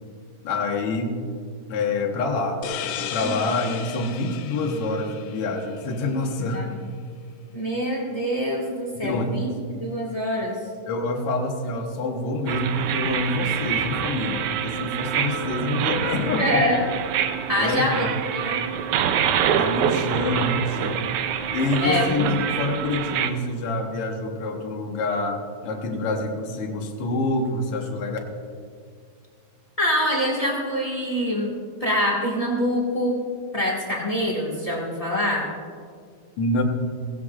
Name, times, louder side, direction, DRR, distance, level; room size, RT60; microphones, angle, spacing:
voice 1, 0.4-1.2 1.7-6.8 9.0-9.4 10.9-16.6 17.6-18.2 19.6-21.1 21.5-28.2 36.4-36.6, left 2 dB, 55° left, 1 dB, 1.7 m, -26 dB
sound 1, 2.6-6.1, left 9 dB, 80° left, 2.3 m, -35 dB
voice 2, 6.4-6.7 7.5-10.6 16.4-16.9 17.5-18.1 18.3-18.6 21.8-22.5 29.8-31.5 31.8-33.2 33.5-35.5, left 1 dB, 40° left, -2 dB, 0.5 m, -25 dB
sound 2, 12.5-23.3, right 9 dB, 90° right, 1.7 m, -26 dB
18.0 x 16.0 x 2.5 m, 2.1 s
omnidirectional pair, 4.2 m